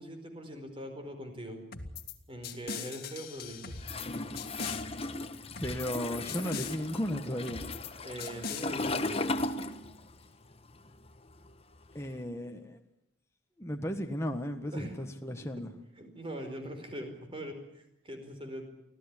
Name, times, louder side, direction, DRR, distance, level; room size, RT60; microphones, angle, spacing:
voice 1, 0.0-1.6 2.3-3.8 8.0-9.3 14.7-14.9 16.0-18.7, equal, 25° right, 5 dB, 4.9 m, -42 dB
sound 1, 1.7-2.1 2.4-4.1 4.4-4.8 5.6-6.0 6.3-6.8 7.5-7.9 8.2-8.7, left 5 dB, 50° left, 2.1 m, -40 dB
Toilet flush, 3.8-10.3 10.5-12.1, left 2 dB, 30° left, 1.2 m, -36 dB
voice 2, 5.6-7.7 11.9-12.8 13.6-15.7, equal, 15° left, 4 dB, 1.6 m, -35 dB
25.5 x 16.0 x 10.0 m, 0.81 s
head